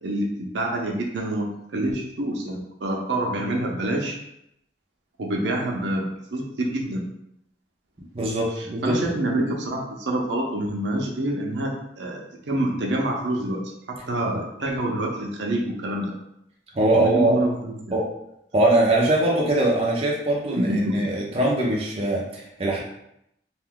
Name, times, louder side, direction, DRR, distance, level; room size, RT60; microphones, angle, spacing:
voice 1, 0.0-1.5 1.7-4.2 5.2-7.0 8.8-16.1 16.9-18.0 20.4-21.1, right 1 dB, 90° right, -1 dB, 0.6 m, -27 dB
voice 2, 8.1-9.0 14.3-14.4 16.7-17.5 17.9-18.1 18.5-22.8, right 1 dB, 35° right, -3 dB, 0.5 m, -22 dB
2.5 x 2.3 x 3.6 m, 0.78 s
head